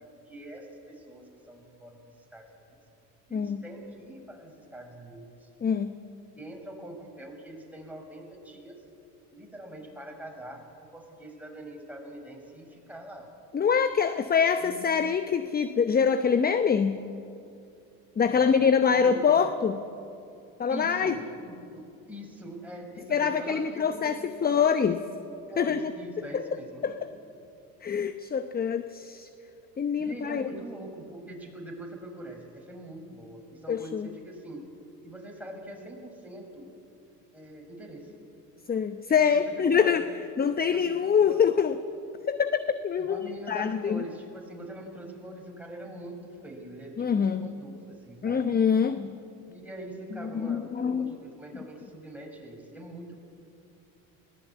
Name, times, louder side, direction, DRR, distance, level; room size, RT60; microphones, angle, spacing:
voice 1, 0.3-2.0 2.3-2.8 3.3-5.5 6.3-8.8 9.3-13.3 14.6-14.9 18.3-19.6 20.7-24.7 25.5-27.0 30.0-34.6 35.0-36.7 37.3-38.1 39.5-40.1 40.7-41.0 41.3-41.4 43.0-48.6 49.5-53.2, right 1 dB, 5° right, 0 dB, 5.7 m, -43 dB
voice 2, 3.3-3.6 5.6-5.9 13.5-17.0 18.2-19.8 20.6-21.1 23.1-25.0 25.6-25.9 26.3-26.4 26.8-27.1 27.8-29.3 29.8-30.4 33.7-34.1 38.7-40.1 40.4-41.8 42.3-44.0 47.0-47.5 48.2-49.2 50.2-51.1, left 6 dB, 20° left, 11 dB, 0.8 m, -25 dB
21.0 x 18.0 x 8.5 m, 2.6 s
hypercardioid pair, 75°, 42 cm